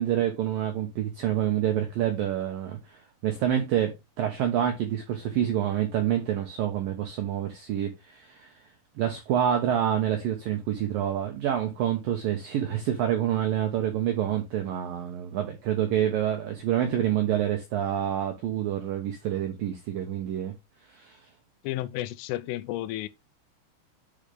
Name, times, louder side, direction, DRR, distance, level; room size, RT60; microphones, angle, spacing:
voice 1, 0.0-3.0 3.2-8.5 9.0-20.5 20.9-21.2, right 10 dB, 80° right, 2.0 m, -27 dB
voice 2, 21.6-23.1, left 15 dB, 90° left, 3.3 m, -32 dB
10.5 x 5.0 x 3.3 m
omnidirectional pair, 5.7 m